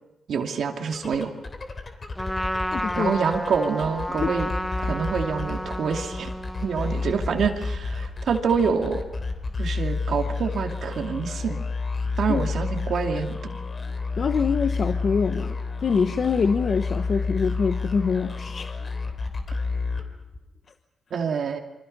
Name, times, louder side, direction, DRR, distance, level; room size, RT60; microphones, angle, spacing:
voice 1, 0.3-1.3 2.9-4.5 4.8-6.3 6.6-9.0 9.6-11.6 12.2-13.4 21.1-21.6, right 6 dB, 70° right, 3 dB, 2.4 m, -26 dB
sound 1, 0.9-20.6, left 4 dB, 35° left, 3.3 m, -30 dB
Trumpet, 2.2-7.4, equal, 5° left, 1.4 m, -32 dB
voice 2, 2.7-3.1 4.2-4.3 12.3-12.5 14.2-18.7, left 5 dB, 50° left, 7 dB, 1.1 m, -25 dB
27.5 x 25.5 x 5.5 m, 0.98 s
cardioid pair, 105°, 0 cm